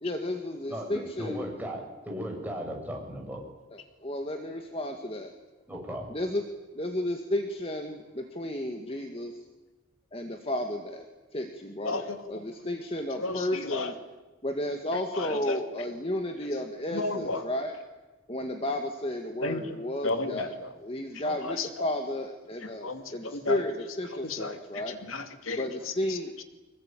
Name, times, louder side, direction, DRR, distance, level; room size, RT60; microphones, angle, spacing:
voice 1, 0.0-1.4 3.7-5.3 6.1-6.4 6.7-9.4 10.1-11.0 11.3-12.0 12.3-13.9 14.4-17.7 18.3-20.5 20.8-23.7 24.0-25.0 25.6-26.3, left 1 dB, 25° left, 5 dB, 2.0 m, -33 dB
voice 2, 0.7-3.4 5.7-6.1, equal, 10° right, -1 dB, 7.3 m, -36 dB
voice 3, 11.8-12.4 13.1-13.9 14.9-15.9 16.9-17.4 19.4-20.7 21.1-21.9 22.6-23.6 24.0-26.4, left 3 dB, 80° left, 7 dB, 2.5 m, -34 dB
26.0 x 23.0 x 9.2 m, 1.2 s
head